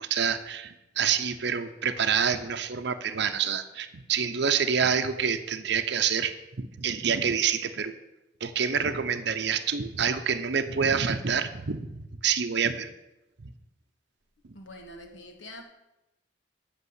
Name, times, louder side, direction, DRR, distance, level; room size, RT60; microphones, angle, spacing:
voice 1, 0.0-7.9 8.4-12.9 13.4-13.5, right 7 dB, 60° right, 7 dB, 0.6 m, -27 dB
voice 2, 14.5-15.6, left 1 dB, 75° left, 4 dB, 1.6 m, -45 dB
8.3 x 6.1 x 8.0 m, 0.97 s
head